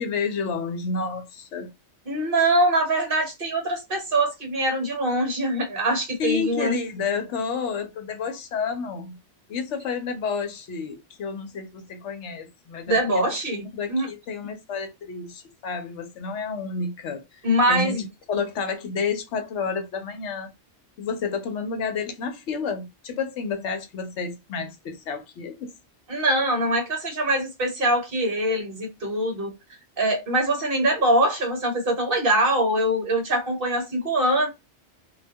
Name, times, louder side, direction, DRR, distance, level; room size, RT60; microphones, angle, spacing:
voice 1, 0.0-1.7 6.2-9.2 9.5-13.3 13.7-17.9 18.3-20.5 21.0-25.7, left 5 dB, 70° left, 0.9 m, -30 dB
voice 2, 2.1-6.7 12.9-14.1 17.4-18.1 26.1-29.5 30.0-34.5, right 1 dB, 50° right, 1.1 m, -23 dB
2.4 x 2.2 x 2.6 m
omnidirectional pair, 1.3 m